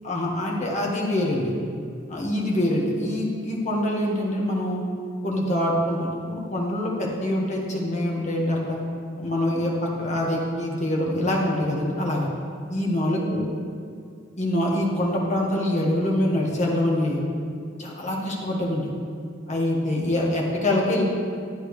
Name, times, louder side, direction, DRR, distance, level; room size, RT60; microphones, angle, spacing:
voice 1, 0.0-1.5 2.1-4.8 5.2-8.8 9.2-12.3 12.7-13.5 14.4-17.2 17.8-18.9 19.5-21.0, left 1 dB, 35° left, -3 dB, 1.7 m, -25 dB
11.5 x 9.4 x 3.3 m, 2.3 s
head